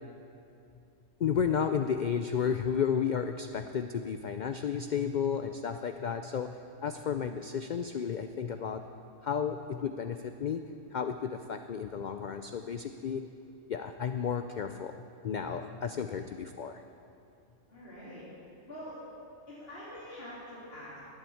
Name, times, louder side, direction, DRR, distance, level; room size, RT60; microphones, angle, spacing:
voice 1, 1.2-6.5 6.8-8.8 9.2-10.6 10.9-13.3 13.7-14.9 15.2-16.7, left 7 dB, 85° left, 8 dB, 0.4 m, -32 dB
voice 2, 15.9-16.3 17.7-18.2 18.7-19.0 19.5-21.0, equal, 45° left, -10 dB, 3.0 m, -45 dB
11.0 x 8.9 x 8.5 m, 2.7 s
omnidirectional pair, 1.3 m